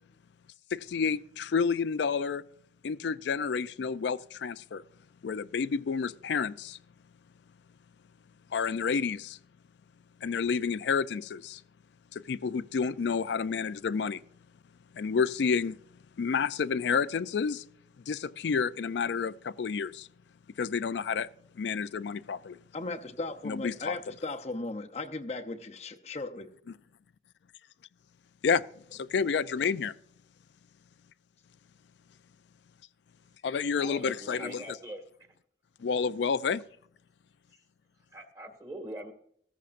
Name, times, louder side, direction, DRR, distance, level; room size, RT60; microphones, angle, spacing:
voice 1, 0.7-2.4 2.8-4.8 5.2-6.8 8.5-9.4 10.2-11.6 12.1-14.2 14.9-15.8 16.2-17.6 18.1-20.1 20.6-21.3 21.6-22.6 23.4-24.0 28.4-28.6 28.9-29.9 33.4-34.8 35.8-36.6, left 5 dB, 80° left, 0.4 m, -30 dB
voice 2, 22.7-26.5, left 2 dB, 35° left, 0.7 m, -37 dB
voice 3, 33.8-35.0 35.3-35.4 38.1-39.1, right 1 dB, 20° right, 1.8 m, -42 dB
16.0 x 14.0 x 2.5 m
head